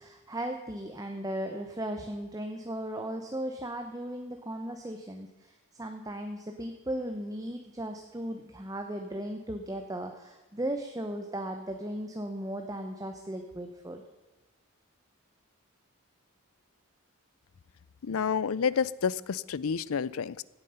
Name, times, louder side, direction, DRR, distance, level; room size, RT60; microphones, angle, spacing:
voice 1, 0.0-14.0, right 1 dB, 15° right, 5 dB, 0.8 m, -36 dB
voice 2, 18.0-20.4, left 6 dB, 75° left, 20 dB, 0.5 m, -29 dB
16.0 x 9.0 x 5.6 m, 1.2 s
head